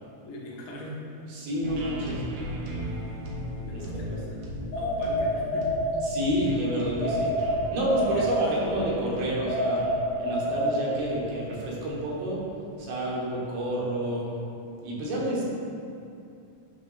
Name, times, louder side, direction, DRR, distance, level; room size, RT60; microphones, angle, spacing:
voice 1, 0.2-1.0 3.6-4.5 4.7-5.8 8.0-8.3, equal, 80° left, -3 dB, 3.0 m, -41 dB
voice 2, 1.3-2.2 3.6-3.8 6.0-7.3 7.7-9.8 10.2-12.4 12.8-14.3 14.8-15.4, right 1 dB, 85° right, -4 dB, 3.2 m, -29 dB
sound 1, 1.6-13.4, equal, 70° right, 1.7 m, -38 dB
sound 2, 4.7-6.5 7.0-8.9 9.5-11.3, equal, 60° left, 2.4 m, -28 dB
8.6 x 3.5 x 5.7 m, 2.6 s
omnidirectional pair, 4.2 m